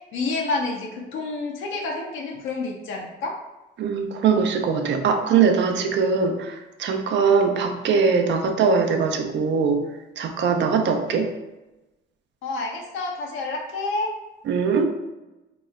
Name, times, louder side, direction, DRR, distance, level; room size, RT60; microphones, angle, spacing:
voice 1, 0.1-3.4 12.4-14.1, left 3 dB, 85° left, 0 dB, 0.6 m, -29 dB
voice 2, 3.8-9.8 10.2-11.3 14.4-14.9, right 5 dB, 65° right, 5 dB, 0.5 m, -21 dB
3.0 x 2.1 x 3.5 m, 1.0 s
cardioid pair, 90°, 20 cm